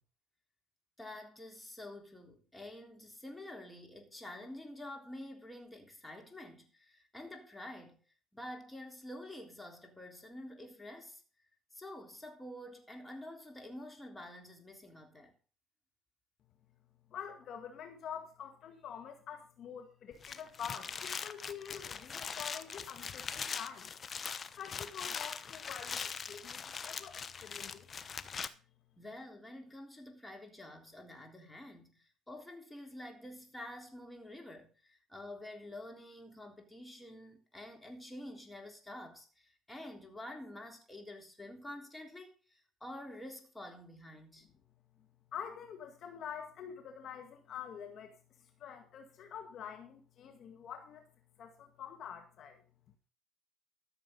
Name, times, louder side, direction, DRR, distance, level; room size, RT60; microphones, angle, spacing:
voice 1, 1.0-8.0 8.3-11.2 11.7-15.3 29.0-44.5, left 1 dB, 10° left, 3.5 m, -48 dB
voice 2, 17.1-23.9 24.4-28.0 45.3-51.1 51.4-52.6, left 8 dB, 55° left, 1.9 m, -46 dB
sound 1, 20.1-28.5, left 6 dB, 40° left, 1.0 m, -41 dB
13.5 x 7.2 x 5.4 m
supercardioid pair, 80°, 0 cm